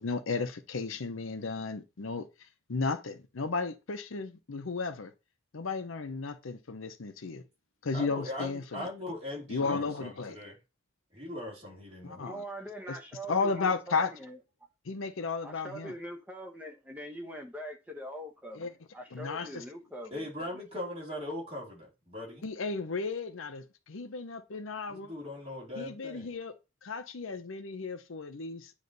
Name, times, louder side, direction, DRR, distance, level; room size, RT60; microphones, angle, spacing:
voice 1, 0.0-2.3 2.7-5.1 5.5-7.4 7.8-8.9 9.5-10.4 12.0-12.4 12.9-13.0 13.3-14.1 14.8-15.9 18.5-18.7 19.1-19.6 22.4-25.1 25.8-26.5 26.8-28.7, left 4 dB, 80° left, 0.7 m, -34 dB
voice 2, 7.9-10.6 11.1-12.2 20.1-22.4 24.9-26.3, left 1 dB, 30° right, 2.7 m, -40 dB
voice 3, 12.1-14.4 15.4-20.6, equal, 10° right, 0.9 m, -43 dB
9.4 x 3.1 x 3.9 m
head